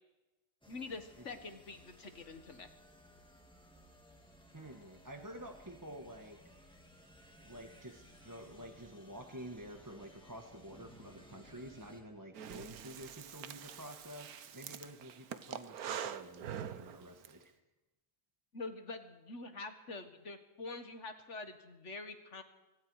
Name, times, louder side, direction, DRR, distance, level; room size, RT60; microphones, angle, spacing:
sound 1, 0.6-12.0, equal, 5° left, 2.7 m, -60 dB
voice 1, 0.7-2.7 18.5-22.4, left 3 dB, 55° left, 8 dB, 1.7 m, -46 dB
voice 2, 4.5-6.4 7.4-17.5, equal, 15° right, 4 dB, 1.3 m, -50 dB
Breathing, 12.3-17.3, right 9 dB, 90° right, 1.4 m, -44 dB
24.5 x 24.5 x 4.8 m, 1.0 s
omnidirectional pair, 1.5 m